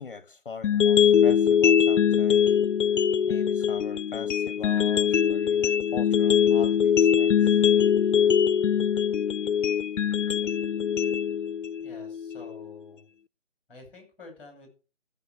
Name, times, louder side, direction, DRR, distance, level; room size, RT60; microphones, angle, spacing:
voice 1, 0.0-2.5 3.2-7.6, left 5 dB, 45° left, 0.9 m, -42 dB
sound 1, 0.6-12.7, left 8 dB, 75° left, 0.5 m, -22 dB
voice 2, 11.8-13.1 13.7-14.7, left 3 dB, 5° left, 6.1 m, -48 dB
14.0 x 6.9 x 6.4 m
figure-of-eight pair, 155°, 38 cm